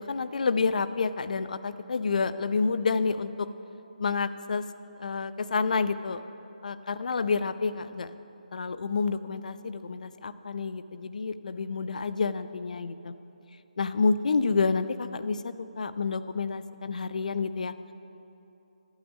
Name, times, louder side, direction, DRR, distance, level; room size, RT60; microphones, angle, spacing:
voice 1, 0.0-3.5 4.0-4.6 5.0-6.2 6.6-8.1 8.5-13.1 13.8-17.7, left 4 dB, 65° left, 13 dB, 0.4 m, -29 dB
12.0 x 8.3 x 3.5 m, 2.9 s
hypercardioid pair, 165°, 4 cm